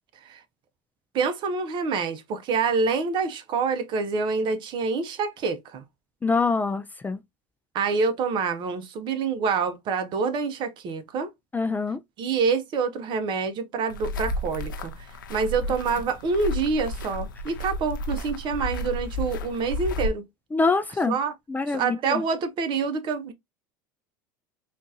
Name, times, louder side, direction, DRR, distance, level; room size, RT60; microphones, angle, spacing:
voice 1, 1.1-5.8 7.7-11.3 12.2-20.2 21.1-21.3 21.7-23.3, right 5 dB, 50° right, 0.8 m, -27 dB
voice 2, 6.2-7.2 11.5-12.0 20.5-21.2 21.5-22.2, left 4 dB, 15° left, 0.4 m, -25 dB
sound 1, 13.9-20.1, equal, 90° left, 0.6 m, -32 dB
3.7 x 2.5 x 2.7 m
hypercardioid pair, 85°, 11 cm